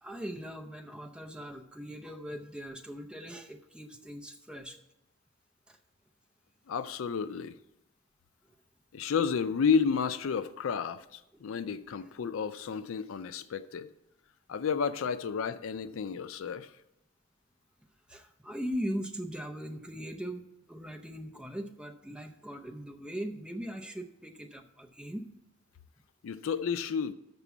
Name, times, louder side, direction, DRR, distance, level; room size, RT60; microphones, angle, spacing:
voice 1, 0.0-4.8 5.7-5.8 11.3-11.4 18.1-25.3, equal, 5° right, 4 dB, 0.6 m, -40 dB
voice 2, 6.7-7.6 8.9-13.9 14.5-16.7 26.2-27.1, left 6 dB, 70° left, 13 dB, 0.4 m, -31 dB
6.9 x 6.0 x 7.1 m, 0.87 s
head